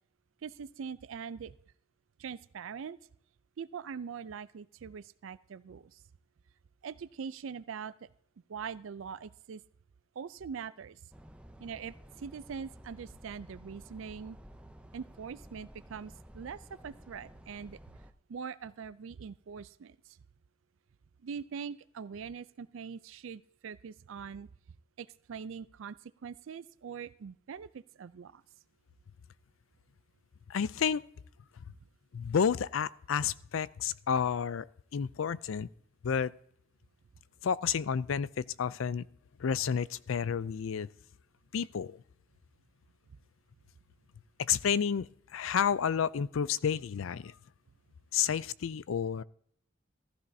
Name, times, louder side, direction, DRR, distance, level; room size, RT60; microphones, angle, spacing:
voice 1, 0.4-1.5 2.2-3.0 3.6-5.9 6.8-8.1 8.5-9.6 10.2-11.0 11.6-14.4 14.9-17.8 18.3-20.0 21.2-24.5 25.0-26.0 26.2-28.4, right 6 dB, 70° right, 16 dB, 0.4 m, -42 dB
sound 1, 11.1-18.1, equal, 5° right, 0.5 m, -53 dB
voice 2, 30.5-31.0 32.1-34.7 34.9-35.7 36.0-36.3 37.4-39.0 39.4-40.9 41.5-42.0 44.4-47.3 48.1-49.2, left 7 dB, 75° left, 19 dB, 0.4 m, -30 dB
15.0 x 13.0 x 2.7 m, 0.68 s
head